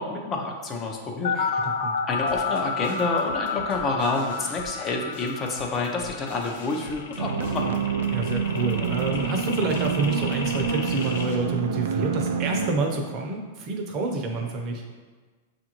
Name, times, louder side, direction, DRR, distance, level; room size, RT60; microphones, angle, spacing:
voice 1, 0.0-1.3 2.1-7.7, left 3 dB, 25° left, 1 dB, 0.6 m, -28 dB
sound 1, 1.2-11.2, left 5 dB, 90° left, 0.4 m, -31 dB
voice 2, 1.3-1.9 8.1-14.8, right 3 dB, 35° right, 2 dB, 0.7 m, -28 dB
sound 2, 2.3-11.3, left 2 dB, 65° left, 1.0 m, -46 dB
sound 3, 7.2-12.7, right 6 dB, 80° right, 0.4 m, -27 dB
6.7 x 2.5 x 2.9 m, 1.4 s
supercardioid pair, 145°, 0 cm